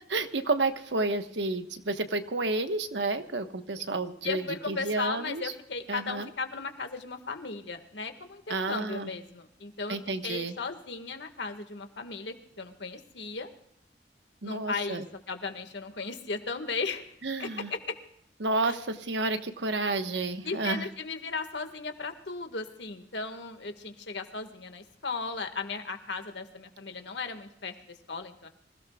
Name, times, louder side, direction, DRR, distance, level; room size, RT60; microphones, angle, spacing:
voice 1, 0.1-5.5 5.9-6.3 8.5-9.1 9.9-10.5 14.4-15.0 17.2-17.7 18.4-20.9, right 2 dB, 85° right, 8 dB, 1.2 m, -30 dB
voice 2, 4.2-10.0 10.2-13.5 14.4-17.1 17.4-18.0 18.7-18.8 20.4-28.5, left 4 dB, 80° left, 6 dB, 1.7 m, -36 dB
26.0 x 16.5 x 2.3 m, 0.74 s
head